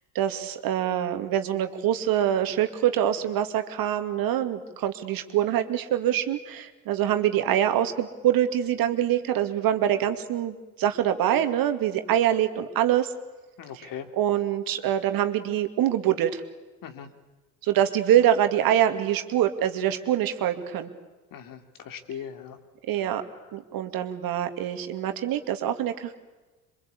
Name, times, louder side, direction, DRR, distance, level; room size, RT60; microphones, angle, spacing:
voice 1, 0.1-13.1 13.7-16.4 17.6-20.9 22.9-23.2 23.5-26.1, right 11 dB, 50° right, 8 dB, 2.4 m, -25 dB
voice 2, 13.6-14.1 16.8-17.1 21.3-22.6, left 8 dB, 50° left, 7 dB, 3.1 m, -39 dB
28.0 x 24.0 x 8.6 m, 1.2 s
figure-of-eight pair, 60°, 44 cm